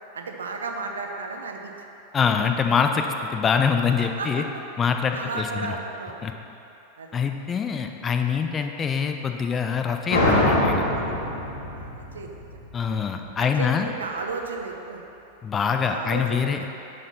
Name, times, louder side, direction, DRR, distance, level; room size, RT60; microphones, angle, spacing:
voice 1, 0.1-1.7 4.0-4.5 5.0-6.4 7.0-7.2 11.7-12.3 12.8-12.9 13.4-15.0 15.7-16.7, right 4 dB, 70° right, 2 dB, 0.8 m, -34 dB
voice 2, 2.1-4.4 4.8-5.8 6.2-6.3 7.1-10.8 12.7-13.9 15.4-16.7, left 6 dB, 20° left, 5 dB, 0.5 m, -24 dB
sound 1, 10.1-13.4, left 1 dB, 55° left, 1.8 m, -24 dB
10.5 x 4.4 x 5.7 m, 2.8 s
figure-of-eight pair, 90°, 0 cm